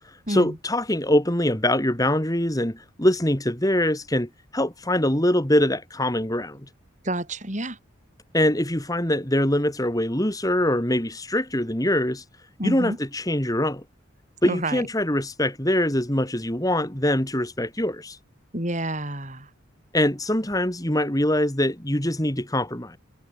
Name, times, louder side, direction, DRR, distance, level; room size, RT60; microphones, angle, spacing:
voice 1, 0.3-6.6 8.3-12.2 12.6-13.8 14.4-18.2 19.9-23.0, left 1 dB, 15° left, 3.0 m, -23 dB
voice 2, 7.0-7.8 12.6-13.0 14.4-14.8 18.5-19.5, right 1 dB, 35° right, 7.5 m, -28 dB
head